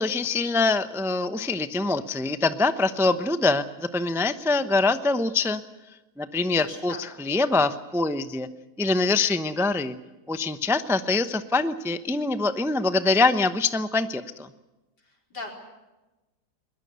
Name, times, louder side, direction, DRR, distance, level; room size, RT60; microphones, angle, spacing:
voice 1, 0.0-5.6 6.2-8.5 8.8-9.9 10.3-14.5, left 3 dB, 5° right, 10 dB, 0.5 m, -24 dB
voice 2, 6.6-7.0 15.3-15.5, left 3 dB, 80° left, 1 dB, 5.2 m, -37 dB
22.0 x 20.5 x 8.1 m, 1.1 s
omnidirectional pair, 1.8 m